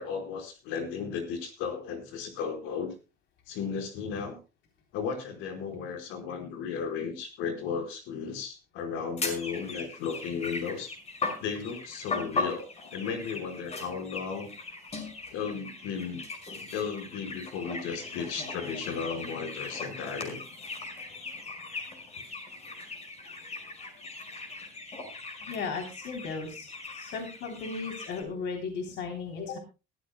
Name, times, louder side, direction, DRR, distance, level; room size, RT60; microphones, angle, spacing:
voice 1, 0.0-2.9 3.5-4.4 4.9-10.9 11.4-12.7 12.9-14.5 15.3-16.2 16.7-20.4, left 6 dB, 85° left, 5 dB, 4.8 m, -35 dB
sound 1, 9.2-28.2, left 3 dB, 35° left, 5.5 m, -39 dB
voice 2, 25.4-26.7 26.9-29.6, left 4 dB, 60° left, 3 dB, 3.4 m, -36 dB
22.0 x 14.0 x 2.2 m, 0.29 s
cardioid pair, 125°, 20 cm